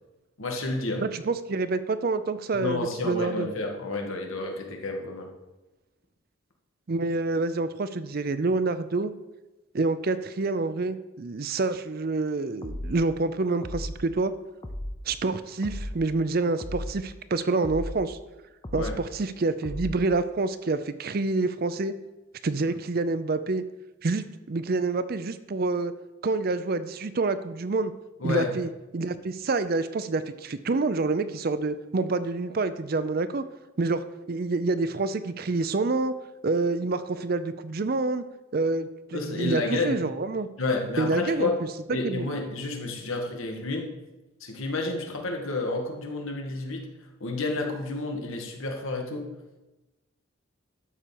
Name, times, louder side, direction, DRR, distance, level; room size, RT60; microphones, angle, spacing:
voice 1, 0.4-1.0 2.5-5.3 18.7-18.9 28.2-28.5 39.1-40.0 40.6-41.6 41.9-43.9 44.4-46.8 47.2-49.3, left 3 dB, 80° left, 2 dB, 1.7 m, -30 dB
voice 2, 1.0-3.5 6.9-9.1 9.7-14.3 15.1-18.2 18.7-21.9 22.4-23.6 24.0-25.9 26.2-27.9 28.2-33.5 33.8-36.1 36.4-38.2 38.5-40.5 41.0-41.5 42.0-42.3, right 3 dB, 45° right, 12 dB, 0.5 m, -27 dB
sound 1, 12.6-13.0 13.6-14.0 14.6-15.0 15.6-16.0 16.6-17.0 17.6-18.0 18.6-19.0 19.6-20.0, left 1 dB, 20° left, 0.7 m, -35 dB
12.0 x 4.4 x 6.9 m, 1.0 s
head